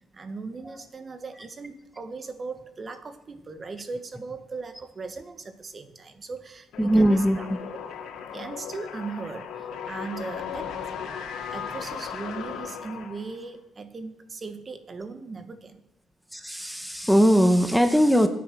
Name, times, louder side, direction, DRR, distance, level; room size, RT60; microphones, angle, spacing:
voice 1, 0.1-7.5 7.7-7.9 8.3-10.8 11.5-15.8, right 4 dB, 35° right, 9 dB, 1.8 m, -38 dB
sound 1, 6.7-13.5, left 7 dB, 85° left, 2.7 m, -37 dB
voice 2, 6.8-7.4 16.3-18.3, equal, ahead, 7 dB, 1.4 m, -20 dB
24.5 x 8.8 x 6.3 m, 0.91 s
cardioid pair, 90°, 0 cm